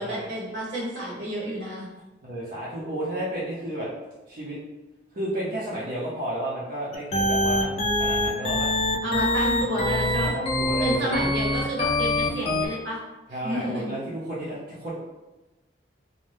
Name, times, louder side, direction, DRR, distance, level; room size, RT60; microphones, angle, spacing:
voice 1, 0.0-1.9 9.0-10.3 10.8-13.0 13.4-13.9, right 1 dB, 80° right, -5 dB, 1.0 m, -30 dB
voice 2, 2.2-3.9 4.3-4.6 5.1-8.7 10.1-11.3 13.3-14.9, right 1 dB, 55° right, -8 dB, 0.6 m, -32 dB
sound 1, 6.9-12.7, left 1 dB, 35° left, 0.4 m, -24 dB
2.6 x 2.2 x 3.2 m, 1.1 s
head